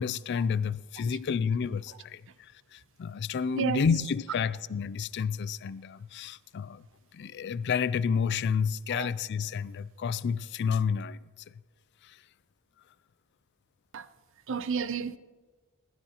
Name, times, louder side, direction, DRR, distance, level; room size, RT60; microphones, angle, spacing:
voice 1, 0.0-6.8 7.1-11.2 12.0-12.2, left 6 dB, 50° left, 0.4 m, -30 dB
voice 2, 14.5-15.2, right 5 dB, 60° right, 0.6 m, -31 dB
20.5 x 12.5 x 2.9 m
head